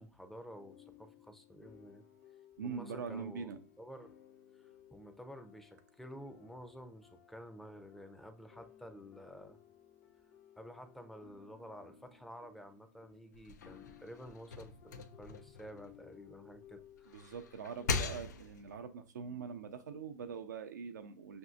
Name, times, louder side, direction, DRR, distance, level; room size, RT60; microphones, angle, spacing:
voice 1, 0.0-2.1 2.6-3.5 3.8-4.2 4.5-9.6 10.6-17.1, equal, ahead, 7 dB, 0.5 m, -51 dB
sound 1, 0.5-18.2, left 10 dB, 60° left, 0.8 m, -60 dB
voice 2, 2.6-3.6 17.1-21.4, right 6 dB, 90° right, 6 dB, 0.4 m, -43 dB
sound 2, 13.3-16.5 17.0-18.8, left 4 dB, 85° left, 0.4 m, -41 dB
5.5 x 2.6 x 2.4 m, 0.39 s
hypercardioid pair, 105°, 9 cm